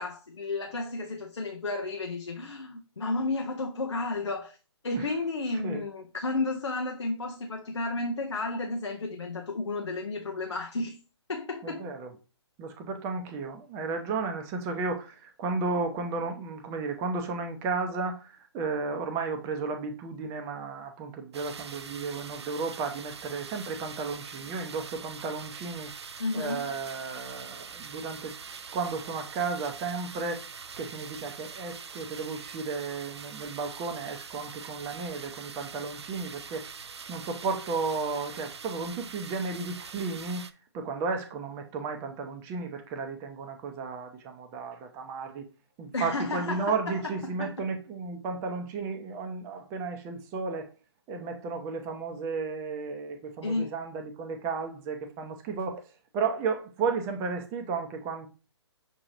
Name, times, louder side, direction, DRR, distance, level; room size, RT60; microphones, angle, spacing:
voice 1, 0.0-4.6 4.8-11.0 11.3-11.9 26.2-26.7 45.9-47.7 53.4-53.7, left 3 dB, 75° left, 0.6 m, -32 dB
voice 2, 11.6-12.1 12.6-25.9 26.3-28.3 28.7-30.4 30.8-36.7 37.1-40.4 40.7-45.5 45.8-50.7 51.1-55.8 56.1-58.3, right 4 dB, 20° right, 0.6 m, -33 dB
sound 1, 21.3-40.5, right 5 dB, 70° right, 0.4 m, -44 dB
6.2 x 2.9 x 2.6 m
figure-of-eight pair, 130°, 15 cm